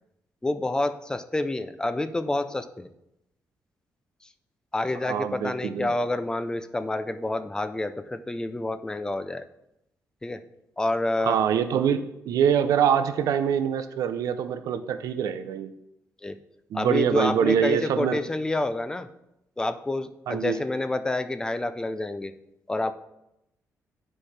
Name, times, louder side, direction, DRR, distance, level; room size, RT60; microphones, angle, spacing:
voice 1, 0.4-2.9 4.7-9.4 10.2-10.4 10.8-11.4 16.2-16.4 16.7-19.1 19.6-22.3 22.7-22.9, left 2 dB, 10° left, 11 dB, 0.4 m, -28 dB
voice 2, 5.1-5.9 11.2-15.7 16.7-18.2 20.3-20.6, right 8 dB, 85° right, 10 dB, 0.5 m, -24 dB
10.5 x 4.3 x 3.3 m, 0.86 s
cardioid pair, 135°, 6 cm